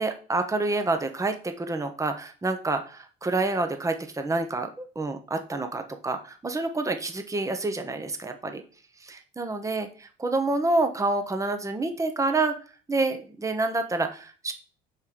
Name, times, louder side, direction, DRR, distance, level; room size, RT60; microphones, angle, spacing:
voice 1, 0.0-8.6 9.0-9.9 10.2-12.5 12.9-14.5, right 2 dB, 15° right, 6 dB, 1.0 m, -28 dB
5.4 x 4.9 x 5.0 m, 0.39 s
hypercardioid pair, 70°, 20 cm